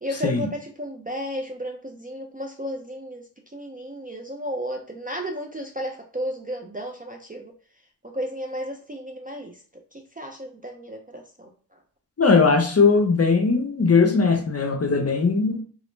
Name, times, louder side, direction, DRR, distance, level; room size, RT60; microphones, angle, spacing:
voice 1, 0.0-7.5 8.0-9.6 9.9-11.8, equal, 20° right, 2 dB, 0.4 m, -33 dB
voice 2, 12.2-15.6, left 4 dB, 35° left, 4 dB, 0.6 m, -19 dB
2.4 x 2.0 x 3.1 m, 0.43 s
cardioid pair, 50°, 43 cm